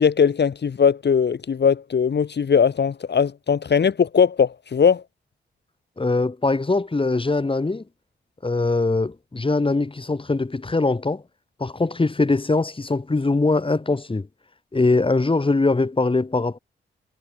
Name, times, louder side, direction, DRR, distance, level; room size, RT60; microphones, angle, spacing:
voice 1, 0.0-5.0, left 6 dB, 55° left, 2.2 m, -19 dB
voice 2, 6.0-7.8 8.4-11.2 11.6-14.3 14.7-16.6, left 3 dB, 25° left, 4.3 m, -22 dB
cardioid pair, 90°, 20 cm